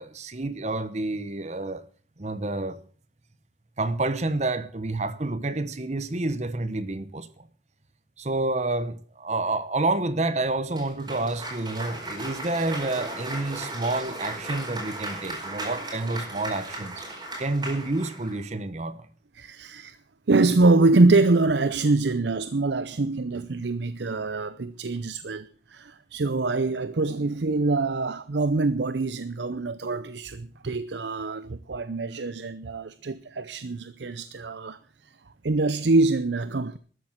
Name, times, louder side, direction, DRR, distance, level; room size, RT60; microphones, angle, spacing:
voice 1, 0.0-1.8 2.2-2.8 3.8-7.5 8.2-17.0 17.4-19.1, right 2 dB, 40° right, 1.0 m, -29 dB
Cheering / Applause, 10.7-18.4, right 2 dB, 25° right, 4.5 m, -36 dB
voice 2, 19.4-20.0 20.3-34.8 35.4-36.8, right 3 dB, 70° right, 0.7 m, -24 dB
13.0 x 9.4 x 7.8 m
head